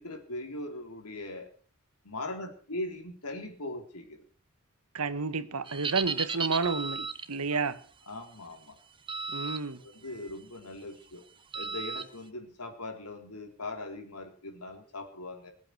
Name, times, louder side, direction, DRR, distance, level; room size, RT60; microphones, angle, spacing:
voice 1, 0.0-1.5 2.0-4.2 7.5-7.6 8.1-8.8 9.8-11.2 11.5-15.5, left 2 dB, 90° left, 4.0 m, -40 dB
voice 2, 4.9-7.8 9.3-9.8, right 4 dB, 85° right, 1.3 m, -31 dB
sound 1, 5.7-7.3 9.1-9.6 10.0-10.3 11.5-12.0, right 5 dB, 25° right, 1.0 m, -34 dB
20.5 x 8.8 x 6.8 m
head